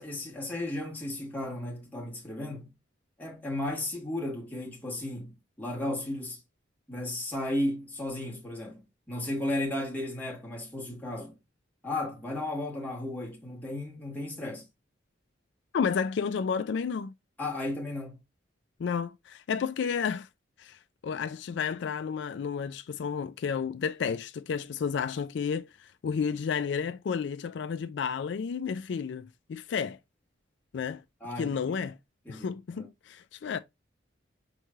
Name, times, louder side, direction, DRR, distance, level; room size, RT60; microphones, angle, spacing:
voice 1, 0.0-2.7 3.2-6.4 6.9-8.8 9.1-11.4 11.8-14.7 17.4-18.2 31.2-31.5 32.2-32.9, left 1 dB, 10° left, 1.3 m, -34 dB
voice 2, 15.7-17.1 18.8-20.3 20.6-30.0 30.7-31.0 31.4-32.0 32.3-33.6, left 6 dB, 70° left, 0.3 m, -31 dB
5.5 x 3.1 x 2.4 m
head